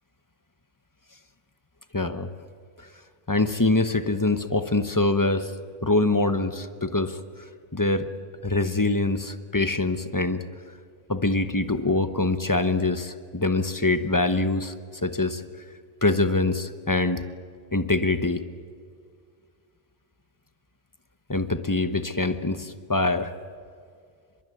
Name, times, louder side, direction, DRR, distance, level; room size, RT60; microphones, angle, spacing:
voice 1, 1.9-2.3 2.8-2.9 3.3-5.5 5.8-8.1 8.4-10.4 11.1-14.7 15.0-15.4 16.0-17.2 17.7-18.4 21.3-23.3, left 2 dB, 20° left, 10 dB, 0.9 m, -24 dB
24.0 x 22.5 x 9.2 m, 2.2 s
omnidirectional pair, 1.2 m